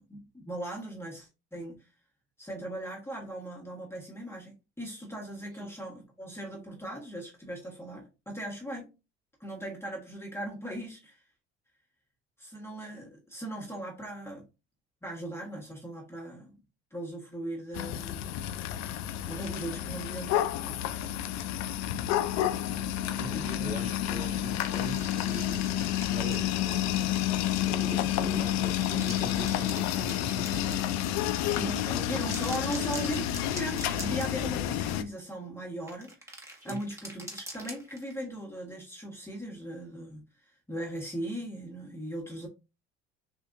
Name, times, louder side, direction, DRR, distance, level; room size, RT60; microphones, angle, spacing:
voice 1, 0.0-1.9 2.4-8.9 9.4-11.2 12.4-14.4 15.0-16.5 16.9-18.3 19.3-20.8 23.3-23.7 31.5-31.8 32.1-42.5, right 1 dB, 10° left, 1.3 m, -38 dB
sound 1, 17.7-35.0, left 12 dB, 65° left, 0.4 m, -30 dB
voice 2, 23.2-27.2 27.7-30.8 31.4-32.2 36.6-36.8, right 1 dB, 25° right, 1.5 m, -41 dB
sound 2, 24.3-27.9 28.6-31.4 32.1-34.6 34.9-35.0 35.9-38.2, right 1 dB, 10° right, 1.3 m, -45 dB
3.6 x 2.6 x 2.5 m
hypercardioid pair, 70°, 29 cm